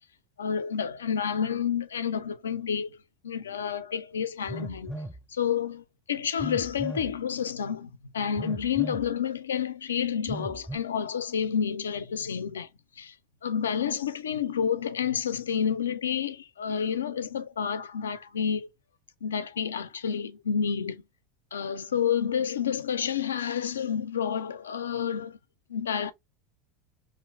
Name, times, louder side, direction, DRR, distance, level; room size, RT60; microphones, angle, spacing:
voice 1, 0.4-2.9 3.2-5.0 5.3-12.7 13.0-13.2 13.4-18.7 19.2-21.0 21.5-25.4 25.7-26.1, left 7 dB, 80° left, 0.3 m, -29 dB
Telephone, 4.5-5.2 6.4-7.1 8.4-9.1 10.3-10.8, right 1 dB, 5° left, 0.3 m, -37 dB
2.8 x 2.5 x 3.0 m
hypercardioid pair, 85°, 0 cm